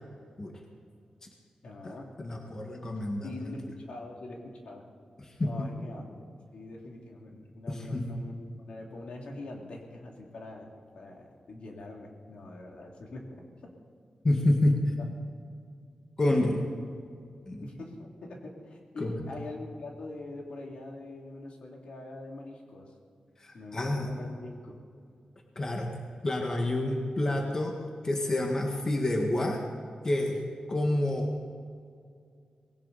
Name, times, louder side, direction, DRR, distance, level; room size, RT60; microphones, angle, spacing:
voice 1, 1.6-2.1 2.6-2.7 3.2-4.9 5.4-6.3 6.5-13.2 16.3-16.6 17.6-22.9 23.5-24.8, left 2 dB, 70° left, 0 dB, 2.7 m, -43 dB
voice 2, 2.2-3.5 5.4-5.7 7.7-8.1 14.2-14.8 16.2-16.6 17.5-17.7 19.0-19.2 23.4-24.1 25.6-25.9 26.2-27.7 28.0-29.6 30.0-30.4 30.7-31.4, left 1 dB, 30° left, 1 dB, 1.7 m, -28 dB
19.5 x 17.5 x 4.2 m, 2.3 s
wide cardioid pair, 140°, 2 cm